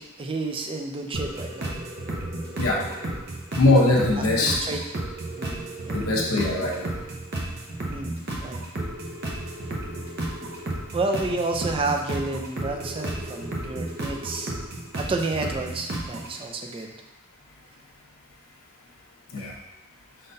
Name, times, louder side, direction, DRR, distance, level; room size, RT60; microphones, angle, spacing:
voice 1, 0.0-1.8 4.2-4.8 5.4-5.6 5.8-6.1 7.9-8.6 10.9-14.5 15.0-16.9 19.4-19.5, right 3 dB, 25° right, 3 dB, 0.4 m, -30 dB
sound 1, 1.1-16.3, right 1 dB, 50° right, 0.7 m, -33 dB
voice 2, 3.6-4.5 5.9-6.9 19.3-19.5, left 2 dB, 80° left, -3 dB, 0.8 m, -21 dB
5.2 x 3.8 x 2.6 m, 0.96 s
head